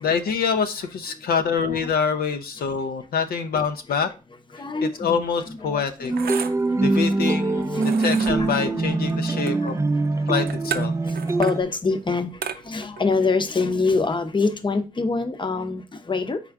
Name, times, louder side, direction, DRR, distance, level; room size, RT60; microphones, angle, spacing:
voice 1, 0.0-4.1 4.5-6.1 6.8-9.8 10.3-10.9, left 6 dB, 70° left, 0.4 m, -25 dB
voice 2, 4.5-5.2 5.5-6.1 7.1-8.8 9.1-9.9 10.3-10.4 11.0-12.3 12.6-16.4, left 4 dB, 30° left, 0.7 m, -26 dB
sound 1, 5.0-14.8, right 7 dB, 75° right, 0.5 m, -37 dB
sound 2, 6.1-11.6, right 3 dB, 20° right, 0.3 m, -23 dB
4.4 x 3.6 x 3.4 m
cardioid pair, 55°, 16 cm